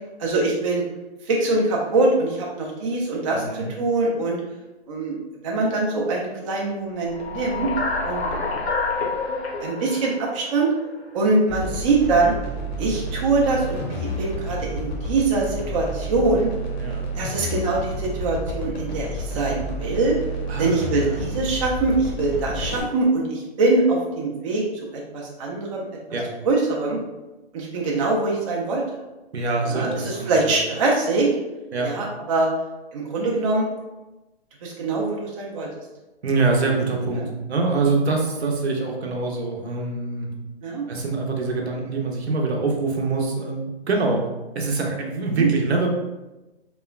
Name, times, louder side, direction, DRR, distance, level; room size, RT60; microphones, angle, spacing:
voice 1, 0.2-0.8 1.3-4.4 4.9-5.2 5.4-7.7 8.0-8.3 9.6-10.7 11.1-12.3 12.8-16.5 17.2-20.2 20.6-24.6 24.9-25.8 26.4-27.0 27.5-28.8 29.7-31.3 31.8-32.5 32.9-33.7 34.6-35.7 37.1-37.3 40.6-40.8 45.3-45.5, right 3 dB, 30° right, -2 dB, 0.4 m, -23 dB
voice 2, 3.3-3.7 16.8-17.0 20.5-21.2 22.5-22.7 26.1-26.3 29.3-30.6 31.7-31.9 36.2-40.3 40.9-44.2 44.5-45.9, right 3 dB, 75° right, 1 dB, 0.7 m, -24 dB
sound 1, 7.0-11.3, left 3 dB, 80° left, 0.8 m, -28 dB
sound 2, 11.5-22.8, equal, 45° left, 0.6 m, -30 dB
2.9 x 2.1 x 2.3 m, 1.0 s
hypercardioid pair, 135°, 32 cm